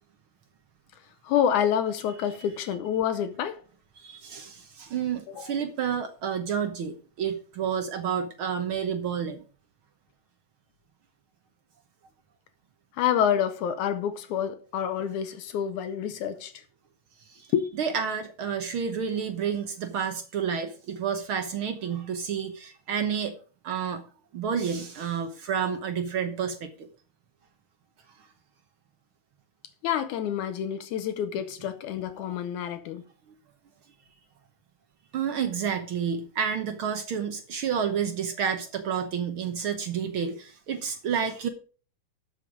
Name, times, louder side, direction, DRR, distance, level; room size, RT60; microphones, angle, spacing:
voice 1, 1.2-3.6 5.4-5.5 12.9-16.6 17.5-17.7 29.8-33.1, left 9 dB, 75° left, 2.1 m, -28 dB
voice 2, 4.0-9.4 17.3-17.5 17.8-23.4 23.6-24.0 24.3-26.9 32.2-32.3 35.1-41.5, right 7 dB, 65° right, 1.3 m, -30 dB
12.5 x 6.6 x 5.0 m
omnidirectional pair, 3.7 m